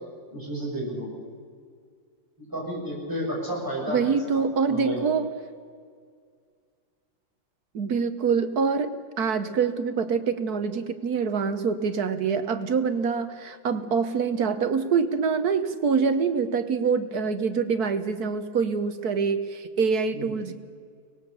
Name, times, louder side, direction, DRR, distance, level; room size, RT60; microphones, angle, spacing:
voice 1, 0.3-1.1 2.5-5.1 20.1-20.3, equal, 10° right, -4 dB, 7.3 m, -32 dB
voice 2, 3.9-5.3 7.7-20.5, right 5 dB, 55° right, 10 dB, 1.5 m, -25 dB
24.0 x 19.0 x 6.9 m, 2.1 s
omnidirectional pair, 2.1 m